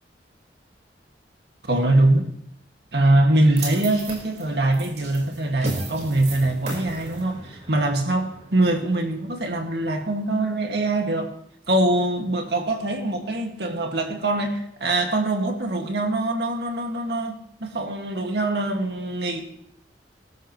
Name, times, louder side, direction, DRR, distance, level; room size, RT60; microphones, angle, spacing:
voice 1, 1.6-2.3 2.9-11.3 11.7-19.4, right 2 dB, 65° right, 3 dB, 2.1 m, -23 dB
sound 1, 3.6-9.8, right 2 dB, 40° right, 4.8 m, -36 dB
22.5 x 12.5 x 3.2 m, 0.73 s
head